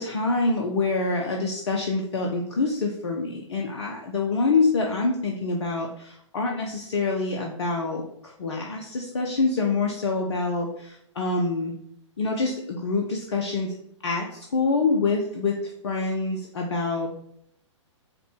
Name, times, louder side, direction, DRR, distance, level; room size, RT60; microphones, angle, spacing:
voice 1, 0.0-11.8 12.2-13.8 14.0-17.1, left 3 dB, 60° left, 1 dB, 0.6 m, -26 dB
5.1 x 2.2 x 4.3 m, 0.70 s
figure-of-eight pair, 115°, 16 cm